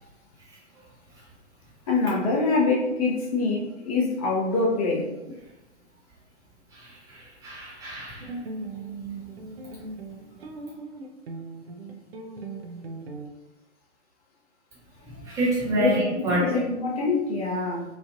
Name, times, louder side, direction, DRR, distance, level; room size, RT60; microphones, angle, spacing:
voice 1, 1.9-5.1 15.7-15.9 16.4-17.8, left 3 dB, 30° left, -3 dB, 0.7 m, -24 dB
voice 2, 6.7-8.3 15.2-16.4, right 1 dB, 10° right, -7 dB, 0.7 m, -27 dB
sound 1, 8.2-13.3, right 3 dB, 55° right, 0.5 m, -38 dB
3.1 x 2.4 x 2.5 m, 0.99 s
figure-of-eight pair, 120°, 37 cm